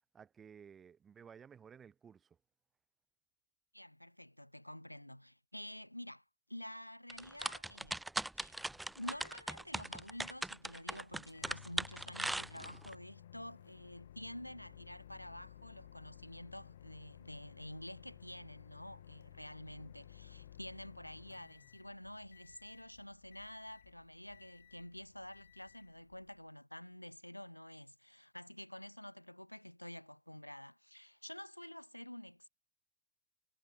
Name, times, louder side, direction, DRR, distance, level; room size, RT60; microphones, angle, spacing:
voice 1, 0.1-2.3, right 7 dB, 20° right, 4.3 m, -56 dB
voice 2, 3.7-6.2 6.5-8.0 8.3-8.6 9.0-32.5, left 1 dB, 90° left, 4.4 m, -49 dB
sound 1, 7.1-12.9, right 2 dB, 5° right, 2.2 m, -39 dB
Microwave oven, 8.5-26.5, left 11 dB, 60° left, 4.5 m, -58 dB
figure-of-eight pair, 90°, 0 cm